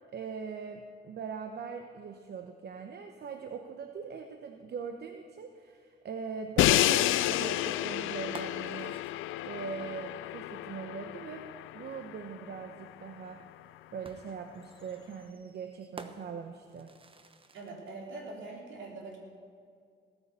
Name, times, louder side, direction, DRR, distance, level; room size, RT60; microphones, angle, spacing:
voice 1, 0.1-9.0 9.4-11.4 11.7-13.4 13.9-16.9, right 6 dB, 55° right, 6 dB, 0.9 m, -41 dB
Crash cymbal, 6.6-12.6, left 15 dB, 85° left, 0.4 m, -30 dB
sound 1, 6.8-10.4 11.9-12.0 14.0-18.0, right 3 dB, 25° right, 1.0 m, -52 dB
voice 2, 17.5-19.2, right 3 dB, 70° right, 0 dB, 3.6 m, -43 dB
17.0 x 9.5 x 6.8 m, 2.2 s
cardioid pair, 90°, 20 cm